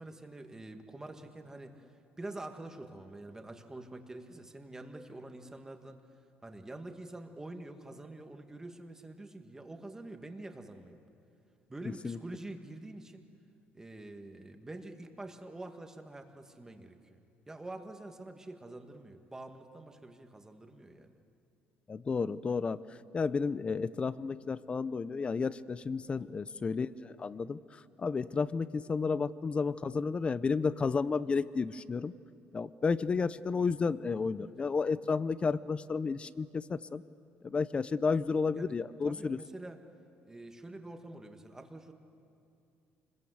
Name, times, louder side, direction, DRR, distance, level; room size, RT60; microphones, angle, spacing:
voice 1, 0.0-6.0 6.4-11.0 11.7-13.3 13.7-17.2 17.5-21.1 26.2-26.5 34.4-34.5 38.5-38.8 39.0-39.8 40.2-41.9, right 2 dB, 10° right, 5 dB, 1.8 m, -46 dB
voice 2, 21.9-22.8 23.1-32.1 32.5-37.0 37.4-39.4, left 4 dB, 25° left, 17 dB, 0.6 m, -32 dB
25.5 x 21.0 x 8.1 m, 2.6 s
cardioid pair, 115°, 4 cm